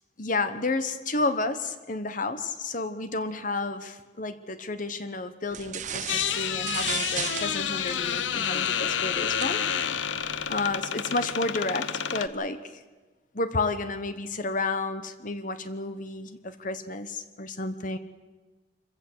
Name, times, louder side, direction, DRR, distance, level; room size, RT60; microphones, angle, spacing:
voice 1, 0.2-9.6 10.5-12.6 13.3-18.0, left 3 dB, 45° left, 10 dB, 1.0 m, -31 dB
sound 1, 5.5-10.8, right 8 dB, 40° right, 0.9 m, -38 dB
sound 2, 6.1-12.3, left 8 dB, 85° left, 0.8 m, -29 dB
26.0 x 15.0 x 8.0 m, 1.3 s
head